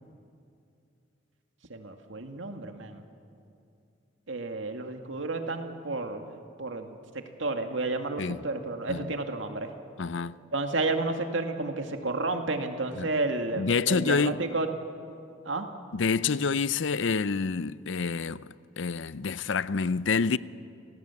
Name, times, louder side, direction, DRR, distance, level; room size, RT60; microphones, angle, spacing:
voice 1, 1.7-3.0 4.3-9.7 10.5-14.7 15.5-15.7, right 2 dB, 85° right, 2.1 m, -31 dB
voice 2, 10.0-10.4 13.0-13.1 13.6-14.4 15.9-18.4 18.8-20.4, left 5 dB, 75° left, 0.6 m, -27 dB
29.5 x 18.0 x 8.4 m
head